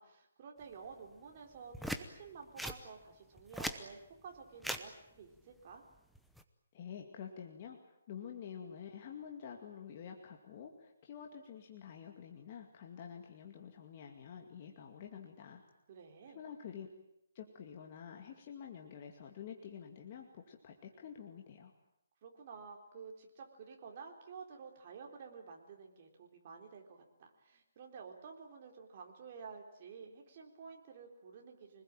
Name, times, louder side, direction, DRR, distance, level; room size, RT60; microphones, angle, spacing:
voice 1, 0.0-5.8 15.9-16.4 22.2-31.8, right 5 dB, 35° right, 2 dB, 3.9 m, -51 dB
sound 1, 1.7-2.0 2.6-2.8 3.4-3.8 4.6-4.8 6.1-6.4, equal, ahead, 0.9 m, -39 dB
voice 2, 6.7-15.6 16.3-16.9 17.3-21.7, left 8 dB, 30° left, 2 dB, 2.3 m, -49 dB
26.5 x 20.5 x 9.1 m, 0.84 s
hypercardioid pair, 170°, 0 cm